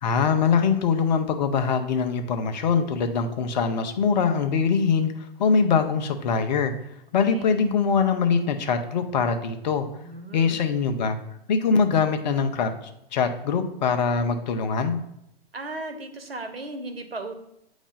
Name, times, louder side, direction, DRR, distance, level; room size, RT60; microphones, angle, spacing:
voice 1, 0.0-6.7 7.1-9.9 10.3-11.2 11.5-12.7 13.1-15.0, left 5 dB, 45° left, 7 dB, 0.9 m, -23 dB
voice 2, 10.0-10.6 15.5-17.3, right 2 dB, 75° right, 7 dB, 1.2 m, -36 dB
8.5 x 3.1 x 5.4 m, 0.82 s
figure-of-eight pair, 120°, 30 cm